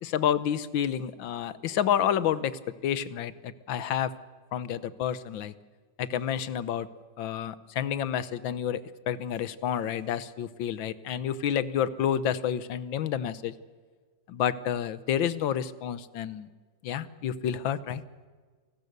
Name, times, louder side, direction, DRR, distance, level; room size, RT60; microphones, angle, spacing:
voice 1, 0.0-4.1 4.5-5.5 6.0-6.9 7.2-8.8 9.1-13.5 14.3-16.5 16.8-18.0, left 9 dB, 85° left, 15 dB, 1.7 m, -29 dB
27.5 x 19.0 x 6.8 m, 1.5 s
omnidirectional pair, 2.0 m